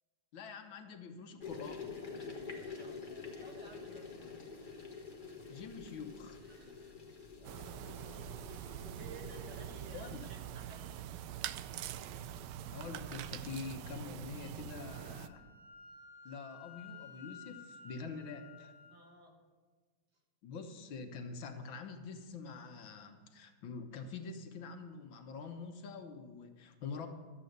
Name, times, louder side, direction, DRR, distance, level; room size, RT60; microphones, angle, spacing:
voice 1, 0.3-1.8 5.5-6.4 9.9-10.3 12.7-15.4 16.3-18.7 20.4-27.1, left 4 dB, 75° left, 5 dB, 1.8 m, -45 dB
sound 1, 1.4-10.1, left 4 dB, 30° left, 1.1 m, -47 dB
voice 2, 2.5-4.4 4.7-4.8 6.4-7.0 7.4-11.0 18.9-19.4, right 2 dB, 55° right, 1 dB, 2.2 m, -56 dB
sound 2, 7.4-15.3, right 10 dB, 75° right, 1.0 m, -44 dB
Wind instrument woodwind instrument, 14.8-19.0, left 5 dB, 10° left, 2.3 m, -54 dB
12.5 x 8.3 x 6.6 m, 1.4 s
omnidirectional pair, 2.2 m